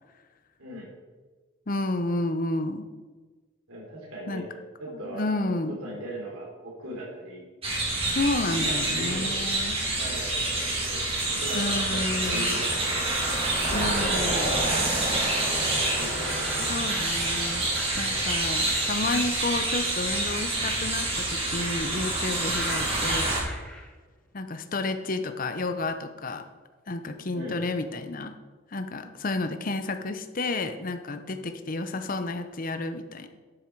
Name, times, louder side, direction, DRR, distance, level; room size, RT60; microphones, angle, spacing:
voice 1, 0.6-0.9 3.7-7.4 8.5-9.4 9.9-12.9 13.7-15.1 16.0-16.7 27.3-27.6, equal, 85° right, -3 dB, 3.4 m, -39 dB
voice 2, 1.7-2.9 4.3-4.5 5.1-5.8 8.0-9.8 11.5-12.6 13.7-14.5 16.7-23.4 24.3-26.5 26.9-28.4 28.7-33.3, left 2 dB, 40° left, 9 dB, 0.7 m, -31 dB
sound 1, 7.6-23.4, right 2 dB, 30° right, 2.4 m, -27 dB
sound 2, 13.7-14.9 15.9-20.1 20.5-24.2, left 1 dB, 5° left, 1.1 m, -43 dB
12.0 x 7.1 x 4.6 m, 1.4 s
head